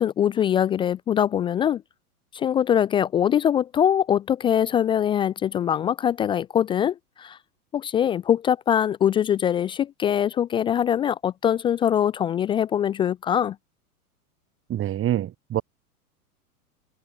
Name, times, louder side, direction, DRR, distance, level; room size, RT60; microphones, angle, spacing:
voice 1, 0.0-1.8 2.3-7.4 7.7-13.6, left 9 dB, 10° left, 0.4 m, -23 dB
voice 2, 14.7-15.6, right 11 dB, 30° right, 2.7 m, -26 dB
figure-of-eight pair, 95°, 45 cm